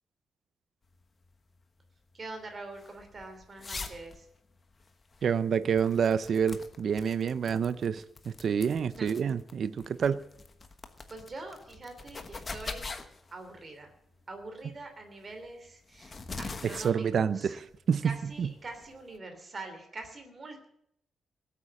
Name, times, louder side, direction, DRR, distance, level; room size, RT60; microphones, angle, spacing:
sound 1, 0.9-19.2, left 3 dB, 25° left, 1.2 m, -45 dB
voice 1, 2.1-4.3 8.9-9.1 11.1-12.9 13.3-13.9 14.3-17.6 18.0-20.7, right 2 dB, 25° right, 3.0 m, -44 dB
voice 2, 5.2-10.2 16.7-18.1 18.4-18.5, right 7 dB, 45° right, 0.5 m, -28 dB
19.0 x 8.5 x 7.5 m
wide cardioid pair, 175°, 0 cm